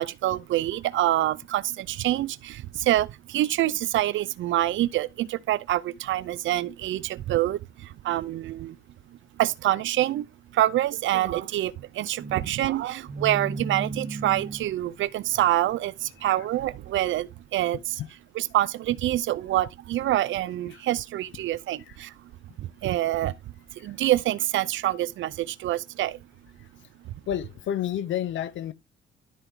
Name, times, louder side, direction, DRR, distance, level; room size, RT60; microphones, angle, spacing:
voice 1, 0.0-8.8 9.4-10.2 10.5-18.0 18.4-22.3 22.6-23.3 23.7-26.2, right 14 dB, 75° right, 0.6 m, -26 dB
sound 1, 12.2-17.1, right 3 dB, 45° right, 2.6 m, -37 dB
voice 2, 27.3-28.7, left 10 dB, 70° left, 0.8 m, -31 dB
12.0 x 4.5 x 3.8 m
cardioid pair, 90°, 20 cm